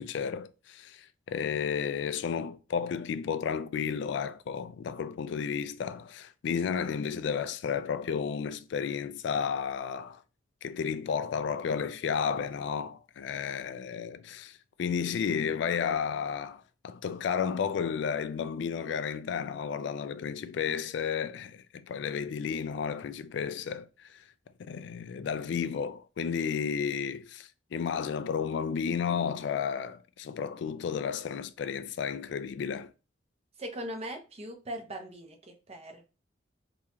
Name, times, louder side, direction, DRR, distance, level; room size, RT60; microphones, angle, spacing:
voice 1, 0.0-10.2 10.6-24.2 24.7-32.9, left 6 dB, 70° left, 0.3 m, -32 dB
voice 2, 33.6-36.1, right 1 dB, 35° right, 0.7 m, -40 dB
3.7 x 2.9 x 2.8 m
head